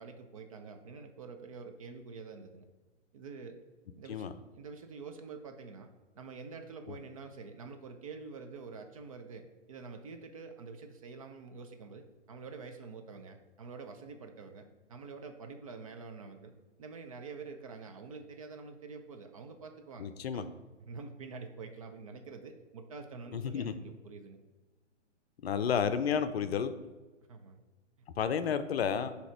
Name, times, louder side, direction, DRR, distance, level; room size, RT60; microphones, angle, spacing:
voice 1, 0.0-2.7 3.1-3.6 4.0-5.9 6.2-20.5 20.9-24.4 27.3-27.6, right 4 dB, 30° right, 5 dB, 0.4 m, -47 dB
voice 2, 20.0-20.4 23.3-23.7 25.4-26.7 28.2-29.1, left 7 dB, 60° left, 10 dB, 0.5 m, -31 dB
7.8 x 2.9 x 4.4 m, 1.2 s
figure-of-eight pair, 120°, 36 cm